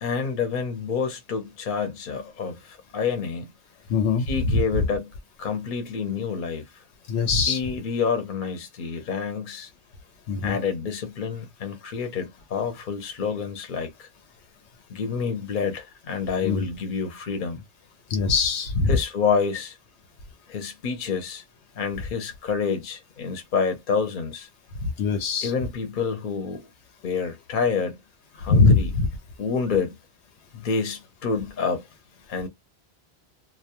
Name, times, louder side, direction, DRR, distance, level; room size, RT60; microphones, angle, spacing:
voice 1, 0.0-3.5 4.3-5.1 5.4-6.7 7.5-9.7 10.4-14.1 14.9-17.6 18.9-19.8 20.5-21.4 21.8-24.5 25.4-26.7 27.0-28.0 28.3-28.9 29.4-30.0 30.5-31.8 32.3-32.5, left 5 dB, 55° left, 0.8 m, -28 dB
voice 2, 3.9-4.6 7.1-7.6 10.3-10.6 16.4-16.7 18.1-19.0 24.8-25.5 28.5-29.1, left 4 dB, 90° left, 0.9 m, -21 dB
2.2 x 2.2 x 2.8 m
omnidirectional pair, 1.1 m